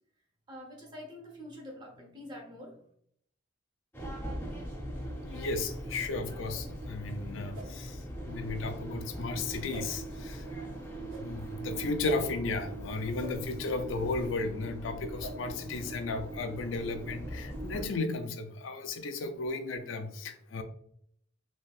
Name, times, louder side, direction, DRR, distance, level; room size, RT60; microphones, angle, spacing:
voice 1, 0.5-2.9, left 1 dB, 25° right, 0.8 m, -46 dB
sound 1, 3.9-17.9, right 1 dB, 15° left, 0.7 m, -40 dB
voice 2, 5.2-20.6, left 3 dB, 85° left, 0.4 m, -35 dB
sound 2, 5.3-5.5 6.4-6.6 7.5-7.7 8.5-8.6 9.7-9.9 11.1-11.2 12.0-12.2 13.2-13.3 14.2-14.3 15.2-15.3, right 1 dB, 80° right, 1.0 m, -46 dB
3.3 x 2.7 x 2.3 m
head